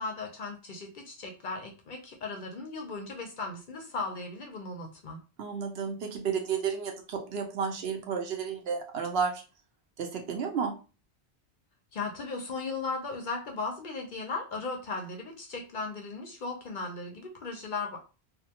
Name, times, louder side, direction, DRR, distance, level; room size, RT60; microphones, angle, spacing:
voice 1, 0.0-5.2 11.9-18.0, left 3 dB, 55° left, 2 dB, 0.6 m, -37 dB
voice 2, 5.4-9.4 10.0-10.7, right 6 dB, 70° right, 3 dB, 0.8 m, -32 dB
2.5 x 2.2 x 2.7 m, 0.33 s
omnidirectional pair, 1.1 m